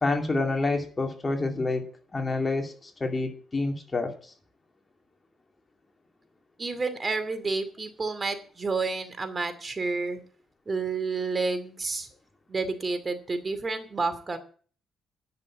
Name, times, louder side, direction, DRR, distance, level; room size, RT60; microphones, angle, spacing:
voice 1, 0.0-4.3, left 3 dB, 25° left, 3 dB, 2.5 m, -28 dB
voice 2, 6.6-10.2 10.7-12.1 12.5-14.4, right 3 dB, 30° right, 10 dB, 2.5 m, -30 dB
11.0 x 6.8 x 8.6 m, 0.42 s
cardioid pair, 90°, 0 cm